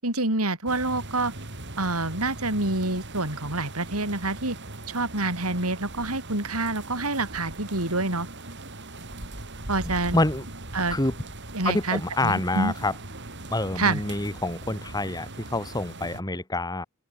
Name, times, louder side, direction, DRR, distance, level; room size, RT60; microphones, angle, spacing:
voice 1, 0.0-1.3 1.8-4.6 4.9-8.3 9.7-10.2 10.7-11.0 11.5-12.7 13.8-14.0, right 2 dB, 80° right, 6.6 m, -27 dB
sound 1, 0.7-16.2, right 2 dB, 55° right, 6.5 m, -40 dB
voice 2, 9.8-10.4 10.9-11.1 11.6-12.9 13.5-16.9, left 2 dB, 15° left, 1.8 m, -27 dB
open air
head